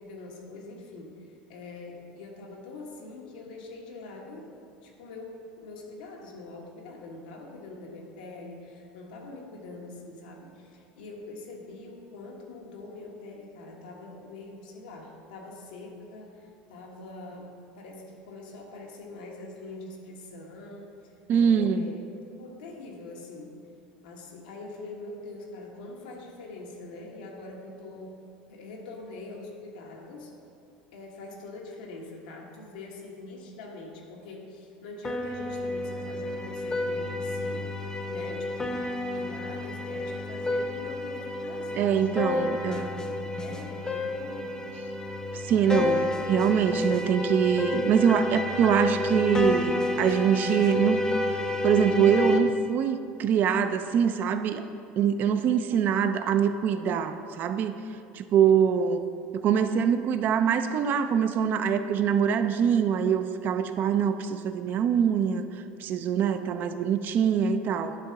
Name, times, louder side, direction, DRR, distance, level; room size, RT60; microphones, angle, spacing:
voice 1, 0.0-4.4 4.8-22.0 22.4-23.6 24.0-28.2 28.5-30.3 30.9-37.7 38.0-43.1 43.4-44.5 55.4-55.5 55.8-56.1 67.3-67.7, left 2 dB, 90° left, 0 dB, 1.4 m, -44 dB
voice 2, 21.3-21.9 41.8-42.9 45.5-51.0 51.6-54.6 55.0-57.8 58.1-59.0 59.3-65.5 65.8-68.0, right 7 dB, 45° right, 10 dB, 0.5 m, -24 dB
sound 1, 35.0-52.4, left 2 dB, 15° left, 0.7 m, -30 dB
11.0 x 3.7 x 5.7 m, 2.5 s
supercardioid pair, 110°, 4 cm